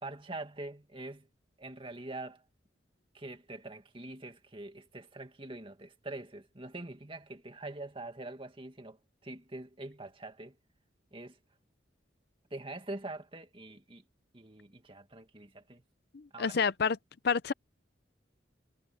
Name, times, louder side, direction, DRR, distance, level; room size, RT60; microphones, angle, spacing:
voice 1, 0.0-1.3 1.6-2.4 3.1-10.6 11.1-11.4 12.5-14.0 14.3-15.8 16.3-16.6, right 2 dB, 30° right, 2.2 m, -44 dB
voice 2, 16.1-17.0 17.2-17.5, left 5 dB, 55° left, 0.6 m, -29 dB
head